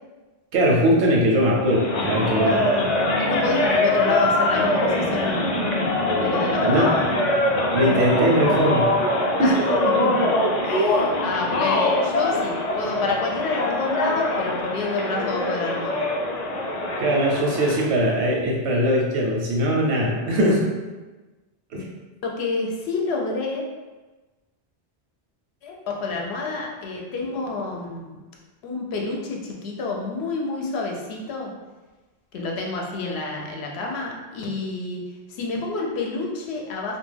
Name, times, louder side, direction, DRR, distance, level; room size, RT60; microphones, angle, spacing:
voice 1, 0.5-2.6 6.6-6.9 7.7-8.9 9.4-9.5 17.0-20.6 21.7-21.9, equal, 85° right, -1 dB, 0.9 m, -20 dB
sound 1, 1.6-17.9, left 1 dB, 55° left, 0.4 m, -23 dB
voice 2, 2.4-5.7 6.2-7.0 7.7-8.7 9.4-9.5 10.0-10.3 10.6-16.1 22.2-23.7 25.6-28.2 28.6-31.5 32.3-35.0 35.3-37.0, left 3 dB, 80° left, 0 dB, 0.8 m, -28 dB
2.3 x 2.2 x 3.2 m, 1.2 s
omnidirectional pair, 1.1 m